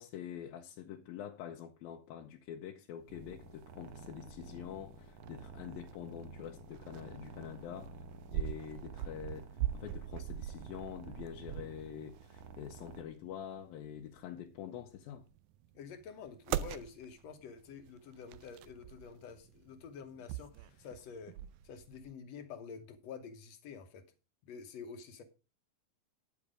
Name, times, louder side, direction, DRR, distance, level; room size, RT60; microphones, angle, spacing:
voice 1, 0.0-8.0 8.3-15.3, left 9 dB, 90° left, 2.7 m, -46 dB
sound 1, 3.0-22.1, right 12 dB, 85° right, 1.7 m, -44 dB
sound 2, 3.1-13.0, right 4 dB, 65° right, 2.4 m, -51 dB
voice 2, 15.8-21.3 21.6-24.0 24.4-25.2, left 6 dB, 65° left, 1.7 m, -48 dB
9.7 x 7.3 x 5.0 m
omnidirectional pair, 4.1 m